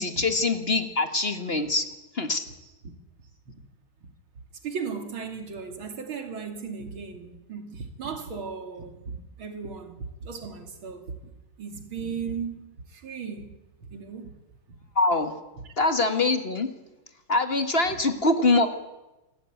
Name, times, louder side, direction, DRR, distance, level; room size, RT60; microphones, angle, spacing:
voice 1, 0.0-1.8 2.1-2.4 14.9-15.3 15.8-16.7 17.3-18.7, left 3 dB, 30° left, 1.7 m, -23 dB
voice 2, 4.6-11.1 11.6-13.5 13.8-14.3 15.6-15.7, right 5 dB, 75° right, 3.3 m, -36 dB
27.5 x 13.0 x 9.1 m
omnidirectional pair, 2.2 m